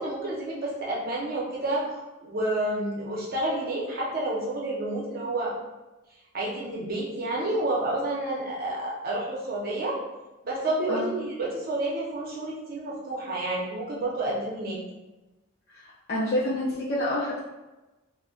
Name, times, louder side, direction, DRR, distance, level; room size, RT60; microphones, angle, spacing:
voice 1, 0.0-5.5 6.3-10.0 10.4-14.8, right 1 dB, 45° right, -4 dB, 0.7 m, -29 dB
voice 2, 15.8-17.4, left 1 dB, 50° left, -7 dB, 0.5 m, -28 dB
2.3 x 2.1 x 3.6 m, 1.1 s
head